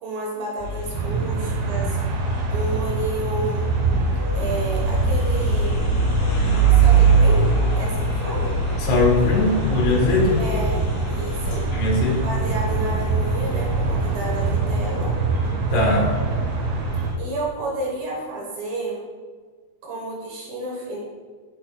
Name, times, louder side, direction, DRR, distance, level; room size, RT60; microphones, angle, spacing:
voice 1, 0.0-2.0 2.5-3.8 4.3-5.8 6.7-8.5 10.4-11.7 12.2-15.1 17.2-19.0 19.8-21.0, right 1 dB, 70° right, -3 dB, 2.5 m, -31 dB
sound 1, 0.6-17.1, right 3 dB, 60° left, 2.9 m, -24 dB
sound 2, 0.9-17.1, right 4 dB, 90° right, 1.8 m, -26 dB
sound 3, 3.4-15.5, equal, 50° right, 1.2 m, -37 dB
voice 2, 8.8-10.4 11.7-12.2 15.7-16.1, left 3 dB, 75° left, -1 dB, 3.1 m, -20 dB
10.5 x 5.9 x 2.2 m, 1.5 s
omnidirectional pair, 4.8 m